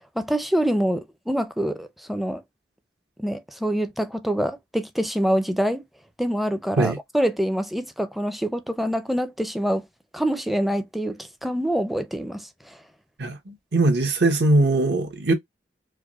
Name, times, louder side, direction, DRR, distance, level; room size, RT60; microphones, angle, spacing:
voice 1, 0.2-2.4 3.2-5.8 6.2-9.8 10.1-12.5, equal, ahead, 0.5 m, -25 dB
voice 2, 13.2-15.3, right 2 dB, 70° right, 1.1 m, -21 dB
4.6 x 2.0 x 2.3 m
head